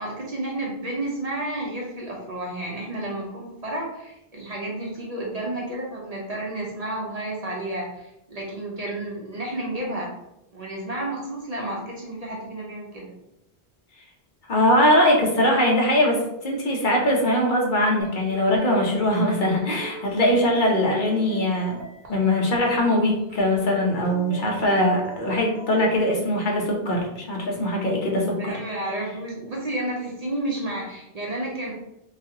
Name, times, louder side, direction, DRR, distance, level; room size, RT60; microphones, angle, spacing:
voice 1, 0.0-10.1 10.5-13.1 20.1-20.2 28.4-31.7, right 1 dB, 45° right, -3 dB, 0.7 m, -31 dB
voice 2, 14.5-21.8 22.1-28.5, left 1 dB, 55° left, -1 dB, 0.9 m, -21 dB
sound 1, 18.0-26.0, equal, 65° right, 1.0 m, -41 dB
3.2 x 2.7 x 2.7 m, 0.85 s
omnidirectional pair, 1.0 m